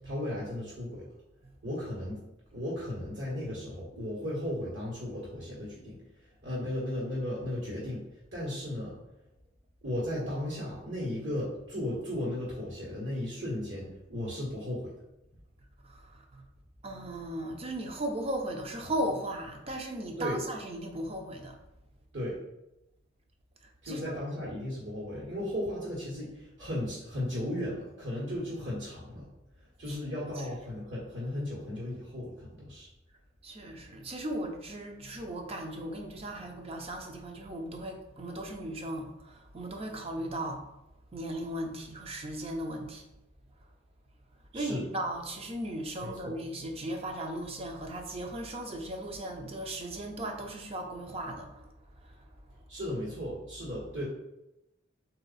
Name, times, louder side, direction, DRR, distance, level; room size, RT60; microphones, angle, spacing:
voice 1, 0.0-1.1 1.6-2.2 2.5-6.0 6.4-8.0 8.3-9.0 9.8-14.9 20.2-20.4 22.1-22.4 23.8-29.3 29.8-32.9 44.5-44.8 46.0-46.4 52.7-54.0, left 1 dB, 70° right, -6 dB, 1.5 m, -35 dB
voice 2, 15.8-16.4 16.8-21.6 23.9-24.2 29.9-30.0 30.3-30.8 33.4-40.6 41.1-43.0 44.5-51.7 52.0-52.2, right 1 dB, 30° right, 3 dB, 0.6 m, -37 dB
4.0 x 2.7 x 4.0 m, 0.90 s
head